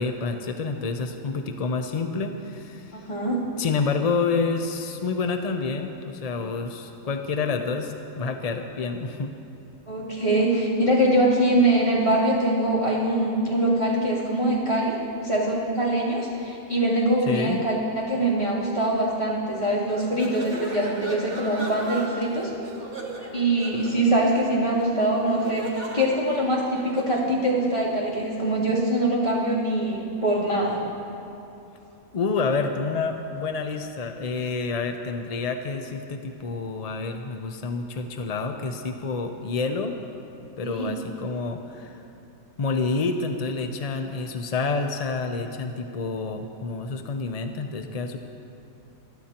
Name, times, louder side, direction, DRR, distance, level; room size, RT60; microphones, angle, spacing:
voice 1, 0.0-3.1 3.6-9.3 17.2-17.6 32.1-40.0 40.6-42.0 42.6-48.2, left 4 dB, 55° left, 6 dB, 0.4 m, -28 dB
voice 2, 2.9-3.4 9.9-22.5 23.3-30.8 40.6-40.9, right 1 dB, 30° left, -7 dB, 3.1 m, -23 dB
sound 1, 19.9-27.3, right 2 dB, 55° right, 1.9 m, -37 dB
22.5 x 13.5 x 2.9 m, 2.9 s
omnidirectional pair, 1.5 m